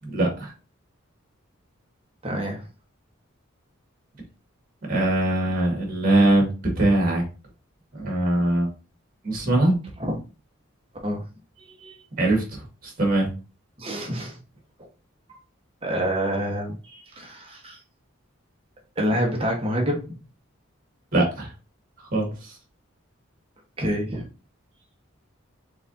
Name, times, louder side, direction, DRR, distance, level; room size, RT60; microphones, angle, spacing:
voice 1, 0.0-0.5 4.8-6.5 6.8-7.2 7.9-8.7 9.2-9.8 12.2-13.3 21.1-21.5 22.1-22.6, right 1 dB, 45° right, 0 dB, 1.8 m, -22 dB
voice 2, 2.2-2.6 10.0-10.2 11.0-11.2 11.8-12.0 13.8-14.4 15.8-17.8 19.0-20.2 23.8-24.2, equal, 25° right, 1 dB, 1.1 m, -27 dB
4.8 x 3.8 x 2.6 m, 0.33 s
head